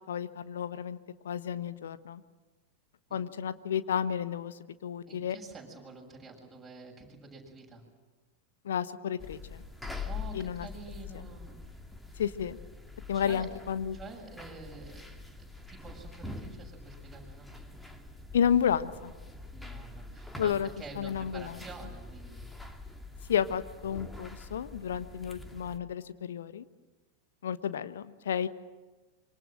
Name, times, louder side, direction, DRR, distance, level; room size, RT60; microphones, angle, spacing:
voice 1, 0.1-1.0 1.2-2.2 3.1-5.4 8.6-9.6 10.3-10.7 12.2-12.6 13.1-14.0 18.3-19.1 20.4-20.7 20.9-21.6 23.3-26.7 27.4-28.5, left 8 dB, 60° left, 13 dB, 1.2 m, -31 dB
voice 2, 5.1-7.8 10.1-11.7 13.1-13.5 13.9-17.7 19.5-22.5, right 3 dB, 10° right, -2 dB, 7.5 m, -48 dB
sound 1, 9.2-25.8, left 3 dB, 5° left, 2.1 m, -45 dB
26.0 x 24.5 x 7.7 m, 1.2 s
figure-of-eight pair, 90°, 0 cm